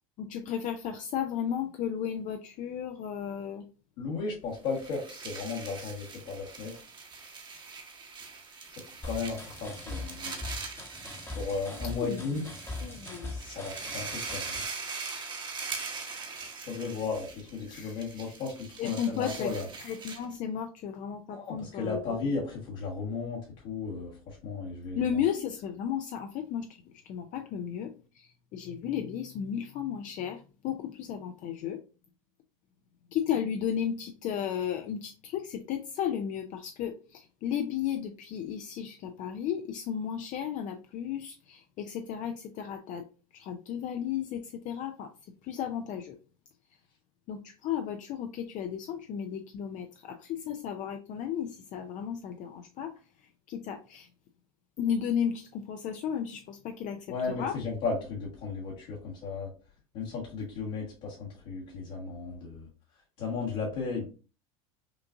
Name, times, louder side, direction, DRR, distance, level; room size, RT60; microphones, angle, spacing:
voice 1, 0.2-3.6 11.9-12.2 12.8-13.3 17.7-18.0 18.8-19.5 19.8-22.0 24.9-31.8 33.1-43.1 43.3-45.1 45.4-46.2 47.3-52.9 53.5-54.1 54.8-57.6, left 9 dB, 45° left, 6 dB, 0.5 m, -34 dB
voice 2, 4.0-6.8 9.0-10.4 11.3-12.5 13.3-14.5 16.7-19.7 21.3-25.1 57.1-59.5 59.9-62.7 63.2-64.0, left 4 dB, 65° left, -6 dB, 1.5 m, -35 dB
sound 1, 4.6-20.4, right 4 dB, 25° right, 1.0 m, -42 dB
sound 2, 9.0-14.6, left 2 dB, 15° left, 1.0 m, -41 dB
5.7 x 2.5 x 2.5 m, 0.35 s
supercardioid pair, 110°, 17 cm